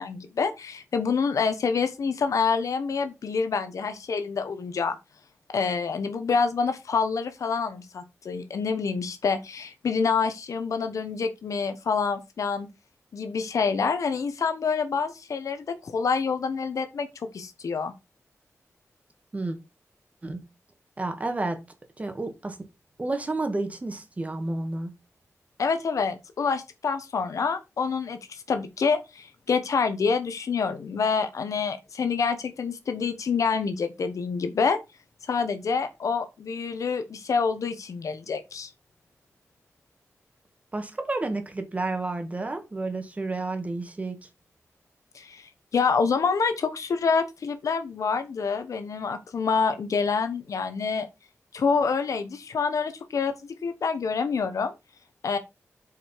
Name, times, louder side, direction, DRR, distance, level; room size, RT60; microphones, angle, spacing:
voice 1, 0.0-5.0 5.5-12.7 13.1-17.9 25.6-34.8 35.3-38.7 45.1-45.4 45.7-51.1 51.5-53.4 53.6-54.7 55.2-55.4, left 5 dB, 80° left, 1.1 m, -27 dB
voice 2, 21.0-21.6 22.0-22.7 23.0-24.9 40.7-44.3, right 2 dB, 25° right, 1.8 m, -31 dB
8.4 x 5.0 x 4.5 m
wide cardioid pair, 140°, 6 cm